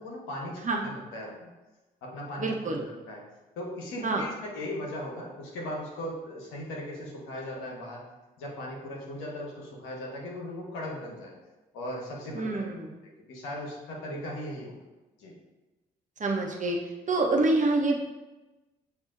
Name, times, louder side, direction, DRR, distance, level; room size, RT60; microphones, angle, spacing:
voice 1, 0.0-1.5 2.0-3.2 3.6-8.0 8.4-11.3 11.7-12.6 13.3-14.8 15.2-15.3, left 1 dB, 75° left, -2 dB, 1.2 m, -38 dB
voice 2, 2.4-2.8 4.0-4.2 12.3-12.9 16.2-16.8 17.1-18.0, right 2 dB, 35° right, 0 dB, 1.0 m, -26 dB
7.9 x 2.7 x 2.5 m, 1.1 s
hypercardioid pair, 40°, 21 cm